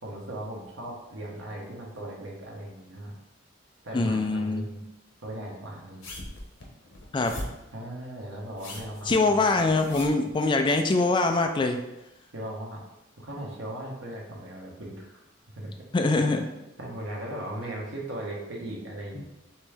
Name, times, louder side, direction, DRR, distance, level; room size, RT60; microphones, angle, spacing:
voice 1, 0.0-3.1 3.8-4.8 5.2-6.0 7.7-9.6 12.3-12.8 13.2-15.2 15.6-15.7 16.1-16.2 16.8-19.3, right 1 dB, 80° right, -2 dB, 1.2 m, -38 dB
voice 2, 3.9-4.7 7.1-7.3 9.1-11.8 15.9-16.4 19.2-19.3, left 3 dB, 25° left, 5 dB, 0.3 m, -23 dB
sound 1, 6.0-7.7 8.5-10.3 11.0-11.1, left 1 dB, 90° left, 1.0 m, -39 dB
4.4 x 3.0 x 3.5 m, 0.95 s
head